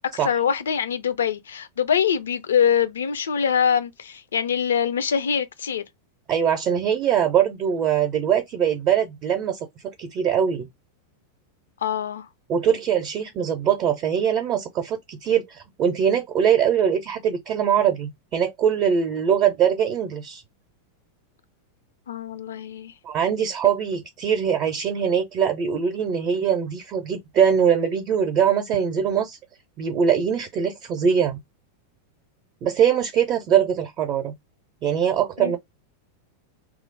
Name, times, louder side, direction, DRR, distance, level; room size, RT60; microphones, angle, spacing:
voice 1, 0.2-5.8 11.8-12.3 22.1-22.9 35.4-35.6, left 8 dB, 65° left, 0.4 m, -24 dB
voice 2, 6.3-9.7 10.0-10.7 12.5-20.4 23.0-29.4 29.8-31.4 32.6-34.3 34.8-35.6, right 8 dB, 35° right, 0.6 m, -22 dB
2.9 x 2.0 x 3.8 m
figure-of-eight pair, 90°, 0 cm